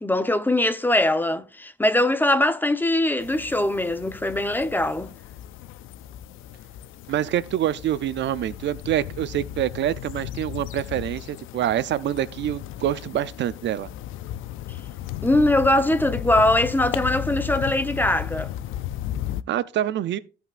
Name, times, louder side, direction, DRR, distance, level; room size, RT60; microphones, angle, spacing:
voice 1, 0.0-5.1 15.2-18.5, left 1 dB, 10° left, 0.8 m, -21 dB
sound 1, 3.2-19.4, left 12 dB, 85° left, 0.5 m, -35 dB
voice 2, 7.1-13.9 19.5-20.2, right 11 dB, 65° right, 0.5 m, -26 dB
15.0 x 5.7 x 2.5 m
cardioid pair, 90°, 20 cm